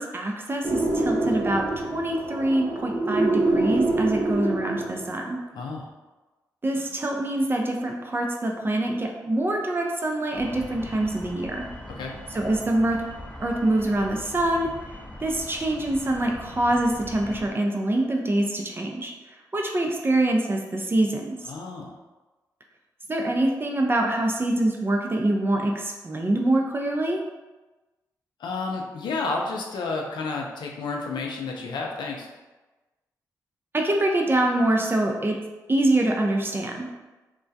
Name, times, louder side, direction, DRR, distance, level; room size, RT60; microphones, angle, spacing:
voice 1, 0.0-5.4 6.6-11.7 12.3-13.0 13.4-14.7 15.2-19.1 19.5-21.4 23.1-27.2 33.8-35.4 35.7-36.9, right 1 dB, 30° right, 1 dB, 0.5 m, -25 dB
sound 1, 0.6-5.3, right 2 dB, 75° right, 0.6 m, -26 dB
voice 2, 5.5-5.9 12.0-12.1 21.4-21.9 28.4-32.3, left 3 dB, 70° left, 0 dB, 0.4 m, -31 dB
sound 2, 10.3-17.5, left 1 dB, 15° left, 0.6 m, -41 dB
2.2 x 2.1 x 2.6 m, 1.2 s
supercardioid pair, 45°, 8 cm